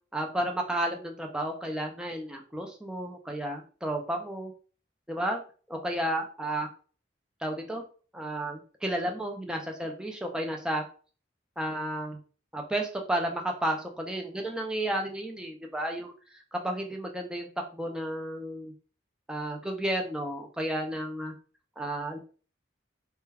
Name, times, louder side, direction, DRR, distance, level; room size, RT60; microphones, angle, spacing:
voice 1, 0.1-4.5 5.1-5.4 5.7-6.7 7.4-7.8 8.1-10.8 11.6-12.2 12.5-16.1 16.5-18.7 19.3-21.3 21.8-22.2, right 1 dB, 5° right, 2 dB, 0.4 m, -32 dB
2.2 x 2.1 x 3.3 m, 0.39 s
head